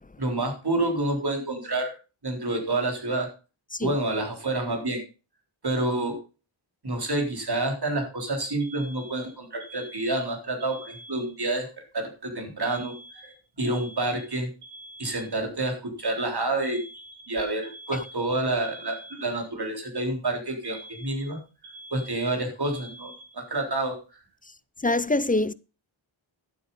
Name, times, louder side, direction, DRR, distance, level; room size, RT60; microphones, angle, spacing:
voice 1, 0.2-1.9 2.2-3.3 3.8-5.0 5.6-6.2 6.8-11.7 11.9-14.5 15.0-16.8 17.3-21.4 21.9-24.0, right 2 dB, 50° right, 3.9 m, -28 dB
Alarm, 8.6-11.6 12.6-15.6 16.6-19.6 20.6-23.6, right 1 dB, 90° right, 4.6 m, -46 dB
voice 2, 24.8-25.5, left 2 dB, 20° left, 0.5 m, -24 dB
12.0 x 8.2 x 5.5 m
wide cardioid pair, 85°, 49 cm